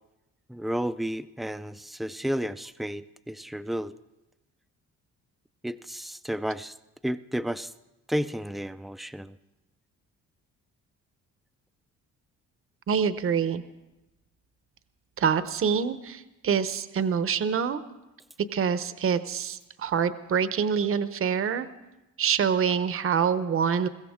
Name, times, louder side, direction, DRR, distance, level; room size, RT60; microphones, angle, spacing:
voice 1, 0.5-3.9 5.6-6.7 7.0-7.7 8.1-9.4, equal, ahead, 13 dB, 0.4 m, -32 dB
voice 2, 12.9-13.6 15.2-17.8 18.5-21.7 22.2-23.9, right 7 dB, 45° right, 12 dB, 0.8 m, -26 dB
21.5 x 16.0 x 3.6 m, 0.99 s
cardioid pair, 90°, 30 cm